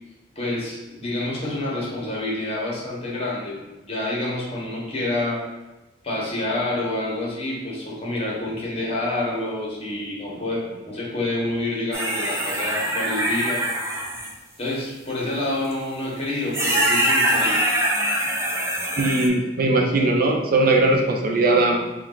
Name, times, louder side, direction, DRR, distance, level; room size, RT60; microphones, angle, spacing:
voice 1, 0.3-3.5 3.9-5.4 6.0-13.7 14.6-17.6, left 2 dB, 35° left, -5 dB, 1.2 m, -28 dB
sound 1, 11.9-14.3 15.7-15.8 16.5-19.3, right 1 dB, 15° right, 0.6 m, -23 dB
voice 2, 19.0-21.8, right 2 dB, 55° right, 1 dB, 0.5 m, -19 dB
4.3 x 2.4 x 3.8 m, 1.1 s
head